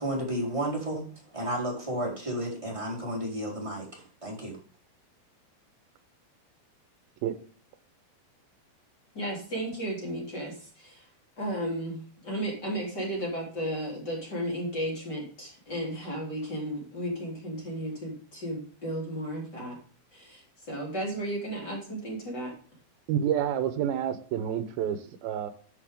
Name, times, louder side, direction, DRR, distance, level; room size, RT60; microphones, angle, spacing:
voice 1, 0.0-4.6, right 1 dB, 10° right, -4 dB, 4.0 m, -32 dB
voice 2, 9.1-11.0 11.4-19.8 20.1-22.5, right 1 dB, 30° left, -2 dB, 3.8 m, -34 dB
voice 3, 23.1-25.5, right 9 dB, 80° right, 10 dB, 2.7 m, -29 dB
13.0 x 7.0 x 3.7 m, 0.42 s
omnidirectional pair, 4.3 m